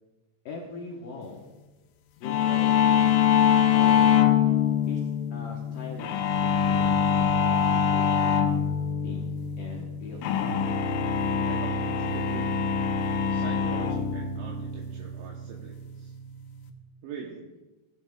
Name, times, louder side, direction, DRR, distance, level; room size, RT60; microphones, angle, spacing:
voice 1, 0.5-1.4 2.2-3.4 3.7-4.1 4.9-5.0 5.3-6.2 6.4-8.4 9.0-9.2 9.6-10.3, left 4 dB, 70° left, -2 dB, 2.3 m, -40 dB
sound 1, 2.2-16.7, left 8 dB, 90° left, 3.3 m, -24 dB
voice 2, 11.5-12.5 13.3-16.1 17.0-17.6, right 6 dB, 75° right, -1 dB, 3.1 m, -42 dB
18.0 x 11.5 x 2.4 m, 1.1 s
omnidirectional pair, 5.5 m